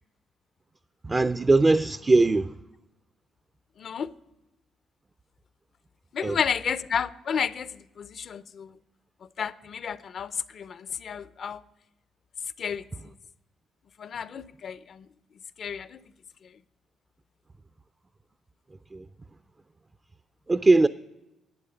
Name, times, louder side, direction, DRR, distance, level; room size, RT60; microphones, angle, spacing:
voice 1, 1.0-2.5 6.2-6.4 18.9-19.0 20.5-20.9, right 3 dB, 25° right, 0.3 m, -20 dB
voice 2, 3.8-4.1 6.1-8.7 9.4-11.6 12.6-12.8 14.0-15.1 15.6-16.0, left 7 dB, 55° left, 0.4 m, -31 dB
11.0 x 8.5 x 5.5 m
cardioid pair, 90°, 0 cm